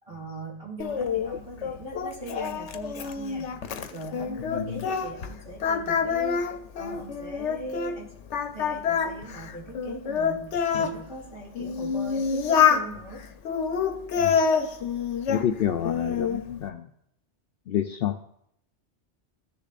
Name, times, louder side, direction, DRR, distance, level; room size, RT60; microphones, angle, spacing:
voice 1, 0.0-8.1 8.5-10.5 10.8-13.2 15.4-15.6, right 2 dB, 30° right, -4 dB, 3.3 m, -40 dB
Singing, 0.8-5.3 5.6-8.0 8.3-10.9 11.5-12.9 13.4-15.5 15.8-16.4, left 6 dB, 85° left, 1.0 m, -26 dB
voice 2, 4.5-4.8 14.2-14.4 15.3-16.9 17.7-18.2, left 10 dB, 65° left, 7 dB, 0.7 m, -29 dB
14.5 x 6.8 x 2.5 m, 0.71 s
omnidirectional pair, 1.2 m